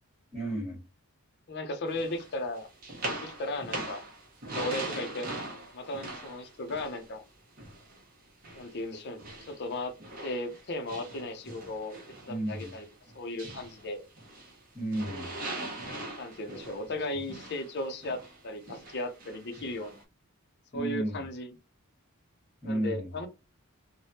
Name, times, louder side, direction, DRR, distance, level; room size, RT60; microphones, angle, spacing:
voice 1, 0.3-0.8 12.3-12.7 14.7-15.3 20.7-21.2 22.6-23.2, right 1 dB, ahead, 1.3 m, -33 dB
voice 2, 1.5-2.7 3.2-4.0 4.5-5.3 5.7-7.2 8.5-9.9 10.2-12.0 12.3-12.9 13.1-14.0 16.2-20.0 20.7-21.6 22.7-23.3, left 2 dB, 50° left, 0.6 m, -36 dB
sound 1, 1.9-8.0 8.4-14.6 14.9-20.0, right 2 dB, 40° right, 1.0 m, -41 dB
3.3 x 2.2 x 2.7 m
head